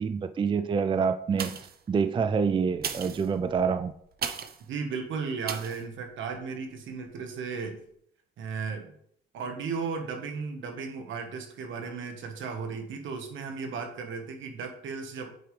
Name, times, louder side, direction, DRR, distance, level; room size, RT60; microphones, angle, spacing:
voice 1, 0.0-1.6 1.9-3.9, right 6 dB, 25° right, 11 dB, 0.4 m, -26 dB
sound 1, 1.3-1.9 2.7-4.7 5.4-5.8 6.4-6.5, right 7 dB, 50° right, 0.8 m, -36 dB
voice 2, 4.7-7.8 8.4-9.0 9.3-15.3, right 5 dB, 75° right, 5 dB, 1.4 m, -35 dB
9.1 x 4.8 x 3.3 m, 0.68 s
cardioid pair, 90°, 20 cm